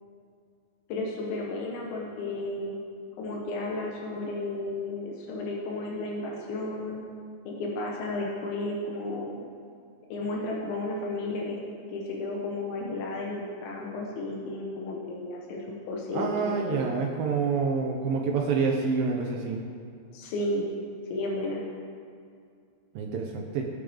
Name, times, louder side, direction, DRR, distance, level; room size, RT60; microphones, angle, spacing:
voice 1, 0.9-2.8 3.2-7.1 7.5-9.4 10.1-11.6 11.9-16.8 20.1-20.7 21.1-21.6, left 2 dB, 85° left, -2 dB, 3.5 m, -33 dB
voice 2, 16.1-19.6 22.9-23.7, right 5 dB, 75° right, 0 dB, 2.1 m, -27 dB
21.5 x 8.8 x 3.5 m, 2.3 s
omnidirectional pair, 5.2 m